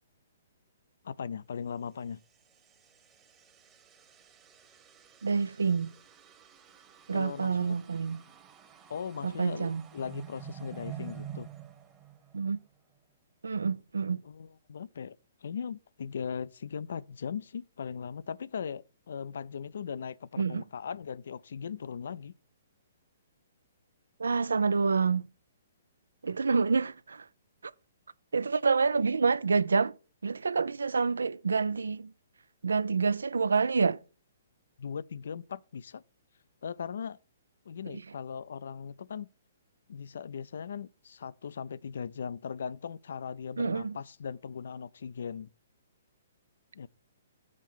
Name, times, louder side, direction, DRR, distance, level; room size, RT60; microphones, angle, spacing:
voice 1, 1.0-2.2 7.1-7.7 8.9-11.5 14.2-15.2 15.4-22.3 34.8-36.0 36.6-37.2 37.7-39.3 39.9-45.5 46.7-46.9, left 7 dB, 65° left, 0.4 m, -39 dB
sound 1, 2.1-12.8, right 10 dB, 20° right, 1.1 m, -49 dB
voice 2, 5.2-5.9 7.1-8.2 9.2-9.9 12.3-12.6 13.4-14.2 20.4-20.6 24.2-25.3 26.2-27.3 27.6-27.7 28.3-29.9 30.2-32.1 32.6-34.0 37.9-38.0 43.6-44.0, right 5 dB, 80° right, 0.3 m, -28 dB
7.4 x 4.4 x 6.1 m
hypercardioid pair, 130°, 0 cm